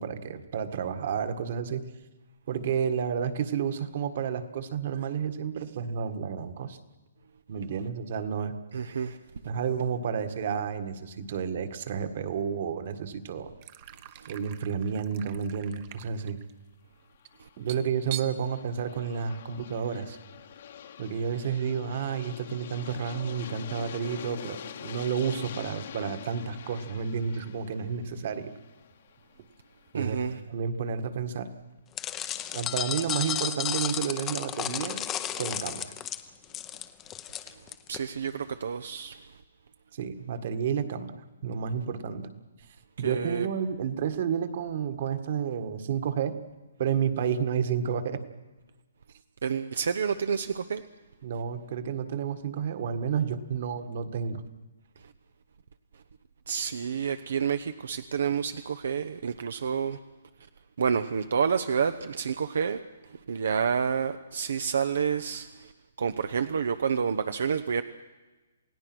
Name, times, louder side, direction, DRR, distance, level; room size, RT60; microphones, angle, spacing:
voice 1, 0.0-1.8 2.5-6.8 7.5-8.6 9.4-13.5 14.3-16.4 17.6-20.2 21.0-28.5 29.9-31.5 32.5-35.0 35.4-35.9 39.9-41.1 41.4-42.3 43.0-46.4 46.8-48.2 51.2-54.4, right 7 dB, 45° right, 9 dB, 1.8 m, -31 dB
voice 2, 8.7-9.2 14.2-14.3 17.4-17.5 29.9-30.4 37.9-39.2 43.0-43.5 49.4-50.8 55.0-55.1 56.5-60.0 60.8-65.7 66.0-67.8, right 6 dB, 70° right, 11 dB, 0.9 m, -29 dB
sound 1, 13.6-19.8 20.0-20.2 20.5-20.9 21.8-21.9 23.3-23.5 24.5-24.6 24.8-25.7 26.1-26.2 27.0-27.1 27.3-27.7 28.0-30.2, right 13 dB, 30° right, 1.0 m, -46 dB
Aircraft, 17.1-29.9, left 9 dB, 50° left, 1.3 m, -45 dB
sound 2, 32.0-38.0, left 11 dB, 15° left, 0.7 m, -33 dB
28.0 x 17.0 x 6.2 m, 1.2 s
hypercardioid pair, 165°, 0 cm